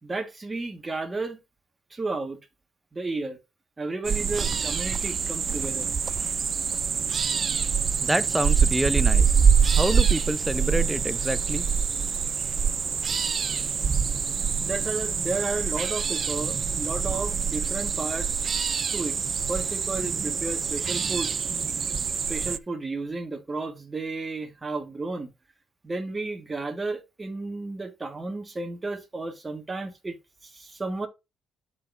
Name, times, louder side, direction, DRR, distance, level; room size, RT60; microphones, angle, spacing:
voice 1, 0.0-1.4 1.9-2.4 2.9-3.4 3.8-5.9 14.6-18.4 18.9-19.2 19.5-21.6 22.1-25.3 25.8-30.2 30.4-31.1, right 3 dB, 25° right, 1.7 m, -33 dB
sound 1, 4.0-22.6, right 6 dB, 45° right, 0.4 m, -25 dB
voice 2, 8.0-9.5 9.7-11.7, right 1 dB, 5° right, 0.7 m, -27 dB
12.0 x 4.2 x 2.7 m
cardioid pair, 90°, 0 cm